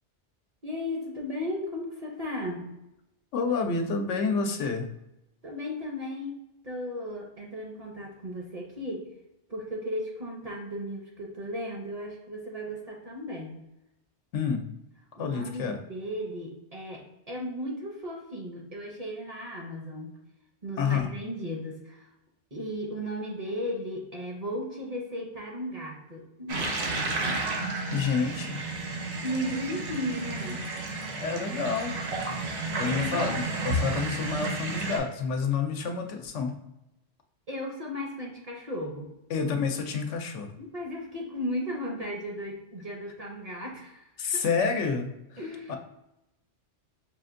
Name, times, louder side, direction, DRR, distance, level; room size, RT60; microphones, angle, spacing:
voice 1, 0.6-2.7 5.4-9.1 9.5-13.6 15.2-20.1 20.6-22.1 22.5-26.9 27.2-27.5 29.2-30.6 32.8-33.1 37.5-39.1 40.6-44.4 45.4-45.8, equal, 40° right, -1 dB, 0.6 m, -35 dB
voice 2, 3.3-4.9 14.3-14.7 15.2-15.8 20.8-21.1 27.9-28.6 31.1-31.9 32.8-36.6 39.3-40.5 44.2-45.4 45.7-45.8, left 5 dB, 85° left, 5 dB, 0.9 m, -29 dB
sound 1, 26.5-35.0, right 2 dB, 65° right, 0.9 m, -32 dB
5.4 x 2.5 x 2.5 m, 0.89 s
omnidirectional pair, 1.2 m